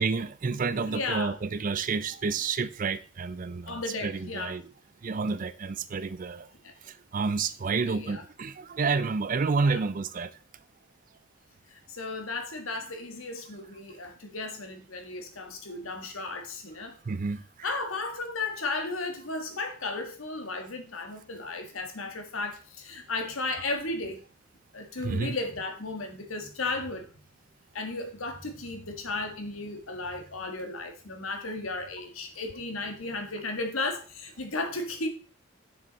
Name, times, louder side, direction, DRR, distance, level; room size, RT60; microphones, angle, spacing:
voice 1, 0.0-4.6 5.0-6.5 7.1-10.3 17.1-17.7 25.0-25.4, right 4 dB, 40° right, 0.4 m, -29 dB
voice 2, 0.7-1.3 3.7-4.5 6.6-6.7 7.8-8.2 9.6-9.8 11.7-16.9 17.6-24.2 24.7-27.1 27.7-35.1, left 3 dB, 80° left, 1.6 m, -34 dB
6.9 x 6.1 x 4.0 m
head